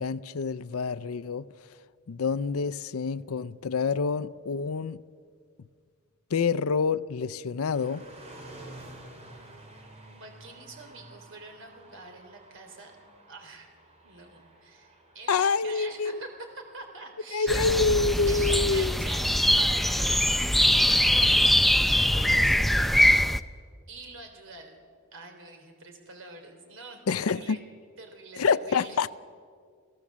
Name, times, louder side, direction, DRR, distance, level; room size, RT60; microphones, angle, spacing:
voice 1, 0.0-1.5 2.1-5.0 6.3-8.0 15.3-16.2 17.3-19.0 27.1-27.6 28.4-29.1, left 5 dB, 80° left, 0.5 m, -27 dB
sound 1, 7.7-21.7, right 1 dB, 30° right, 3.3 m, -52 dB
voice 2, 10.2-12.9 13.3-13.7 14.0-17.6 18.2-23.2 23.9-24.8 25.1-27.6 28.0-29.1, right 3 dB, 65° right, 3.3 m, -45 dB
sound 2, 17.5-23.4, left 1 dB, ahead, 0.5 m, -22 dB
29.0 x 17.0 x 7.3 m
head